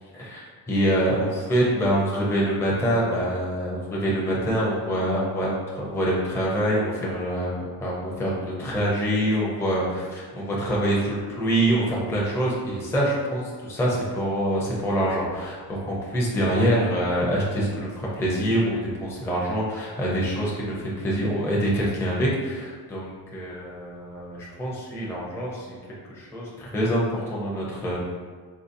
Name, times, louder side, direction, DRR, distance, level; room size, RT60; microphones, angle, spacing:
voice 1, 0.1-25.8 26.1-28.0, equal, 5° left, -5 dB, 0.4 m, -25 dB
3.8 x 2.6 x 2.5 m, 1.5 s
cardioid pair, 140°, 43 cm